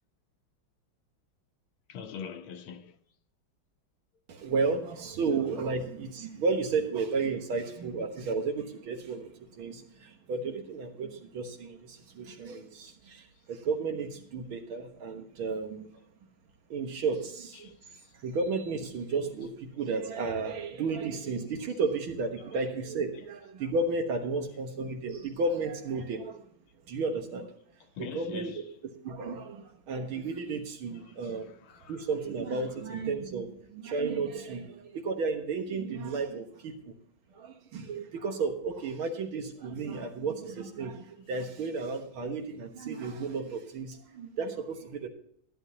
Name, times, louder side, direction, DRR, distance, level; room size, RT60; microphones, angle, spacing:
voice 1, 1.9-3.0 5.6-5.7 12.9-13.0 17.5-18.2 19.4-19.5 21.1-21.3 21.7-21.8 22.5-22.7 23.1-23.3 24.3-24.4 26.0-26.1 27.8-28.8 30.9-32.9, left 7 dB, 85° left, 1.8 m, -46 dB
voice 2, 4.3-9.3 9.6-15.9 16.7-17.8 18.2-26.4 26.9-27.5 28.0-28.6 29.0-31.5 31.9-36.9 37.3-45.1, right 4 dB, 85° right, 2.2 m, -33 dB
11.5 x 11.5 x 2.8 m
omnidirectional pair, 2.2 m